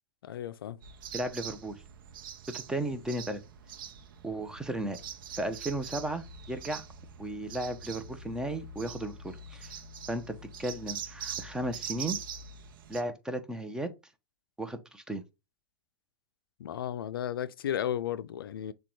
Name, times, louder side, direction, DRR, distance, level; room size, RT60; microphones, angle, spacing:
voice 1, 0.2-0.8 16.6-18.7, left 10 dB, 70° left, 0.4 m, -34 dB
sound 1, 0.8-13.0, right 6 dB, 65° right, 0.7 m, -43 dB
voice 2, 1.1-1.8 2.5-3.4 4.2-5.0 5.3-6.8 7.2-9.7 10.1-12.2 12.9-13.9 14.6-15.2, right 1 dB, 5° right, 0.7 m, -35 dB
6.6 x 2.3 x 3.1 m
hypercardioid pair, 105°, 12 cm